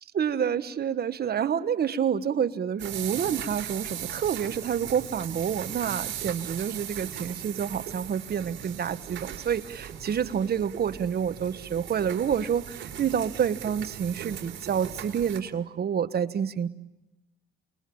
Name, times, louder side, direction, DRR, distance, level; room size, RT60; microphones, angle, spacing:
voice 1, 0.1-16.7, right 8 dB, 50° right, 12 dB, 1.4 m, -28 dB
sound 1, 2.8-15.4, right 9 dB, 70° right, 4.2 m, -38 dB
28.5 x 21.5 x 8.7 m, 0.96 s
cardioid pair, 90°, 20 cm